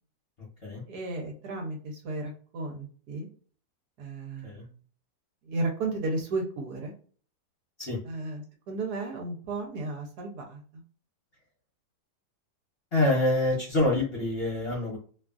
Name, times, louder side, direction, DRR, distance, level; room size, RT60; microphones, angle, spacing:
voice 1, 0.9-3.3 4.0-4.7 5.4-6.9 8.0-10.8, right 2 dB, 65° right, 1 dB, 1.2 m, -34 dB
voice 2, 12.9-15.0, left 2 dB, 45° left, -4 dB, 0.9 m, -26 dB
2.9 x 2.4 x 2.3 m, 0.42 s
omnidirectional pair, 1.9 m